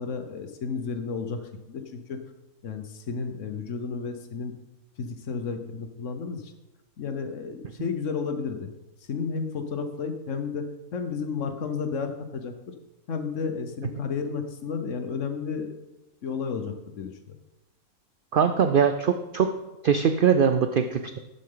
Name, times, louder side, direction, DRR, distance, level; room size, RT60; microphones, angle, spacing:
voice 1, 0.0-2.2 2.6-4.5 5.0-6.5 7.0-8.7 9.1-12.7 13.1-15.8 16.2-17.3, left 5 dB, 60° left, 7 dB, 1.2 m, -32 dB
voice 2, 18.3-19.5 19.8-21.2, right 7 dB, 85° right, 8 dB, 0.4 m, -22 dB
11.5 x 7.8 x 3.8 m, 1.0 s
omnidirectional pair, 1.5 m